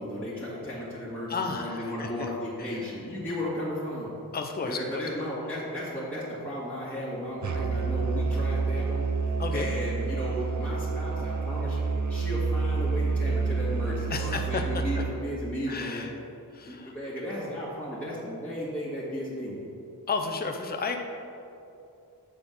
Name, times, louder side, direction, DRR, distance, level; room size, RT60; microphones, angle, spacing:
voice 1, 0.0-4.1 4.7-9.0 9.5-16.1 16.6-19.6, equal, 5° left, -9 dB, 1.8 m, -34 dB
voice 2, 1.3-2.3 2.6-2.9 4.3-5.0 9.4-9.7 14.1-15.0 15.7-16.1 16.5-16.9 20.1-21.0, left 4 dB, 25° left, 3 dB, 0.6 m, -33 dB
Musical instrument, 7.4-15.2, right 4 dB, 50° right, 0.5 m, -28 dB
7.4 x 4.3 x 6.7 m, 2.7 s
wide cardioid pair, 75°, 38 cm